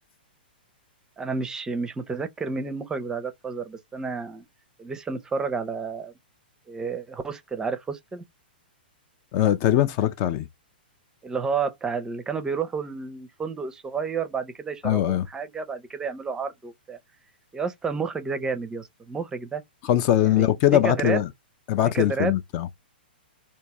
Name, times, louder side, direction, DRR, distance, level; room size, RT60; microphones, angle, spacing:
voice 1, 1.2-4.4 4.8-6.1 6.7-8.2 11.2-17.0 17.5-19.6 20.2-20.5 20.7-21.2 21.8-22.3, right 5 dB, 10° right, 0.5 m, -30 dB
voice 2, 9.3-10.5 14.8-15.3 19.8-21.3 21.7-22.7, left 12 dB, 35° left, 0.4 m, -21 dB
3.5 x 2.7 x 2.9 m
hypercardioid pair, 130°, 6 cm